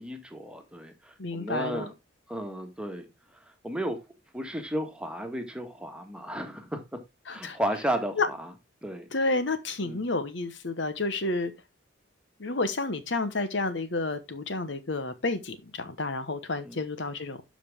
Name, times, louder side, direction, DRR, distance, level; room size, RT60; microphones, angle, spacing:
voice 1, 0.0-1.9 2.3-3.1 3.6-4.0 4.3-7.0 7.3-8.5 8.8-9.1 9.8-10.0 16.6-16.8, right 1 dB, 5° right, 1.7 m, -33 dB
voice 2, 1.2-1.9 7.3-7.6 8.2-8.3 9.1-11.5 12.4-17.4, left 3 dB, 65° left, 1.2 m, -30 dB
12.5 x 5.3 x 3.6 m
head